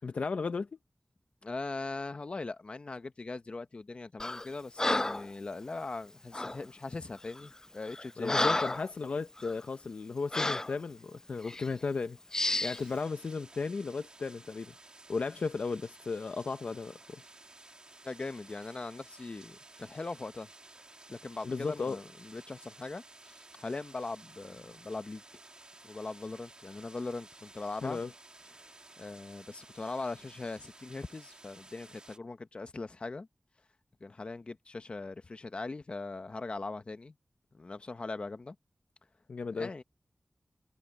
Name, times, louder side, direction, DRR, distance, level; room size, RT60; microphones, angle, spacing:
voice 1, 0.0-0.7 8.2-12.2 12.6-14.7 15.1-17.2 21.4-22.0 27.8-28.1 39.3-39.7, left 4 dB, 85° left, 0.7 m, -35 dB
voice 2, 1.4-8.6 18.0-20.5 21.1-25.2 25.8-28.0 29.0-33.3 34.0-37.1 37.5-38.6 39.5-39.8, left 3 dB, 60° left, 1.3 m, -40 dB
Breathing, 4.2-4.5 4.8-5.3 6.3-6.6 7.3-7.4 7.9-8.9 9.4-9.5 10.3-10.7 11.4-11.7 12.3-12.8, left 2 dB, 25° left, 0.4 m, -31 dB
sound 1, 12.5-32.2, right 2 dB, 45° right, 2.8 m, -55 dB
wide cardioid pair, 65°, 2 cm